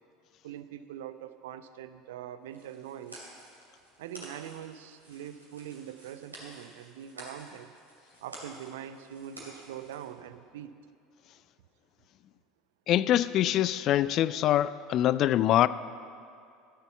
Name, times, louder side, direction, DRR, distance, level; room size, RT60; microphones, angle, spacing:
voice 1, 0.4-3.2 4.0-7.7 8.2-10.7, right 10 dB, 65° right, 0.5 m, -43 dB
sound 1, 2.5-10.1, right 1 dB, 85° right, 2.4 m, -50 dB
voice 2, 12.9-15.7, left 12 dB, 45° left, 0.3 m, -24 dB
14.0 x 6.9 x 6.9 m
figure-of-eight pair, 70°, 0 cm